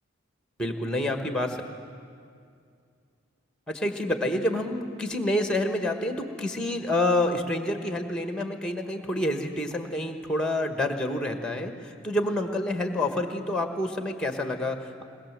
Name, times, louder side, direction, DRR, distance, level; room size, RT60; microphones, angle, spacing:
voice 1, 0.6-1.6 3.7-15.0, left 1 dB, 5° left, 6 dB, 1.4 m, -28 dB
21.5 x 20.5 x 7.5 m, 2.3 s
head